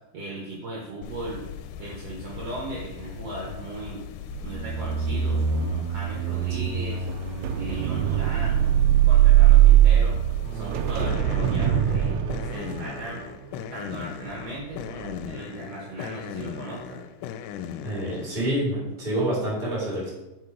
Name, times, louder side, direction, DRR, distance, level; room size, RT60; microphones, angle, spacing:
voice 1, 0.1-1.5 1.8-4.0 4.4-7.1 7.6-8.6 9.1-10.2 10.5-13.2 13.7-17.0, right 1 dB, 55° right, -3 dB, 2.1 m, -37 dB
sound 1, 1.0-18.4, left 8 dB, 85° left, 2.1 m, -39 dB
sound 2, 4.3-14.6 15.0-15.2, right 11 dB, 75° right, 1.7 m, -22 dB
voice 2, 17.8-20.1, right 1 dB, 15° right, -7 dB, 3.5 m, -27 dB
9.7 x 4.8 x 5.0 m, 1.0 s
omnidirectional pair, 3.7 m